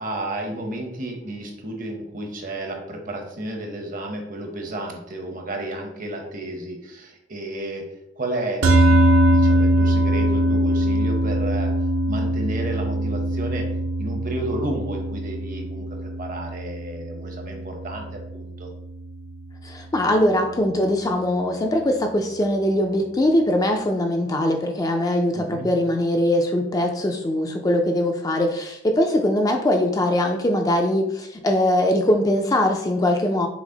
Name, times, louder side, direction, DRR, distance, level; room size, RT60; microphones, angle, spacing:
voice 1, 0.0-7.9 8.2-8.6 8.9-11.7 12.1-13.7 14.0-18.7 25.3-25.7, right 1 dB, 45° right, 3 dB, 0.8 m, -32 dB
sound 1, 8.6-19.1, right 1 dB, 85° right, 0.7 m, -22 dB
voice 2, 19.6-33.5, left 1 dB, 20° left, 3 dB, 0.4 m, -21 dB
6.0 x 2.0 x 3.8 m, 0.84 s
head